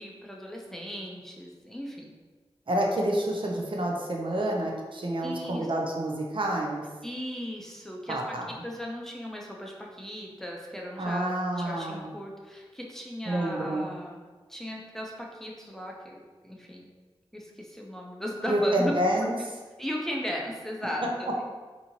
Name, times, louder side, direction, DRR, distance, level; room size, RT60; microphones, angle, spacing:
voice 1, 0.0-2.1 5.2-5.7 7.0-8.4 8.6-14.2 14.5-16.8 17.3-19.0 19.8-21.4, equal, 5° left, -2 dB, 0.6 m, -37 dB
voice 2, 2.7-6.8 8.1-8.4 11.0-12.0 13.3-13.9 18.5-19.3, right 1 dB, 60° right, -1 dB, 0.6 m, -28 dB
4.2 x 2.7 x 2.9 m, 1.4 s
wide cardioid pair, 60°, 10 cm